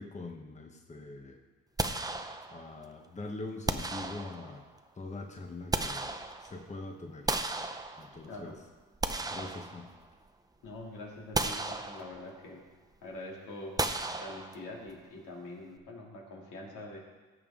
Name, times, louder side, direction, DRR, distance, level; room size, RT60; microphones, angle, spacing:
voice 1, 0.0-1.4 2.5-4.6 5.0-7.3 8.0-8.6 9.3-9.9, left 2 dB, 25° left, 3 dB, 1.1 m, -43 dB
sound 1, 1.8-2.8 3.7-4.7 5.4-6.7 7.3-8.4 8.8-10.3 10.7-10.8 11.3-12.4 13.8-14.9, right 2 dB, 10° right, 0.6 m, -35 dB
voice 2, 8.3-8.6 10.6-12.6 13.0-13.8 14.2-17.0, left 2 dB, 80° left, -3 dB, 2.9 m, -44 dB
16.0 x 6.9 x 3.8 m, 1.3 s
cardioid pair, 90°, 30 cm